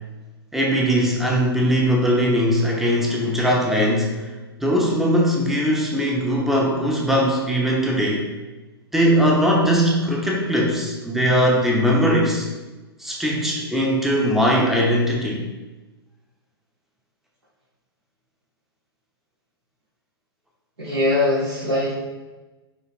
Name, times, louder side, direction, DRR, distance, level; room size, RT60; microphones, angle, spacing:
voice 1, 0.5-4.3 4.6-8.2 8.9-12.5 13.0-15.5, equal, ahead, -2 dB, 0.9 m, -20 dB
voice 2, 20.8-22.0, left 1 dB, 80° right, -10 dB, 2.0 m, -21 dB
9.6 x 3.3 x 3.1 m, 1.2 s
figure-of-eight pair, 110°, 13 cm